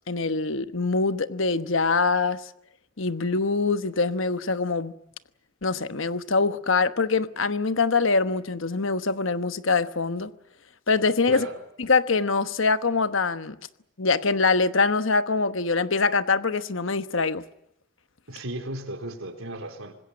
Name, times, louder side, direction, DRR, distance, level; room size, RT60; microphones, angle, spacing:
voice 1, 0.1-2.4 3.0-4.9 5.6-10.3 10.9-11.5 11.8-13.6 14.0-17.4, left 4 dB, 70° left, 1.1 m, -24 dB
voice 2, 11.3-11.6 18.3-20.0, right 1 dB, 80° right, 4.0 m, -35 dB
25.5 x 20.5 x 8.8 m
head